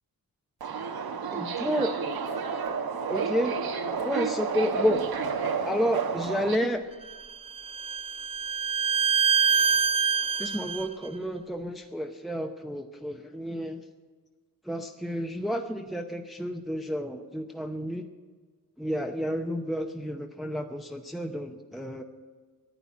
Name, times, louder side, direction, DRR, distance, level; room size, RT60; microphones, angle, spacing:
Subway metro underground, 0.6-6.6, right 5 dB, 85° right, 1.1 m, -30 dB
voice 1, 1.3-1.9 3.1-3.5 4.0-5.0 5.6-6.8 9.2-9.3 10.4-13.8 14.6-18.0 18.8-22.0, equal, ahead, 5 dB, 0.8 m, -30 dB
Bowed string instrument, 7.1-10.9, right 6 dB, 20° right, 0.3 m, -25 dB
10.0 x 10.0 x 9.6 m, 1.5 s
wide cardioid pair, 90°, 36 cm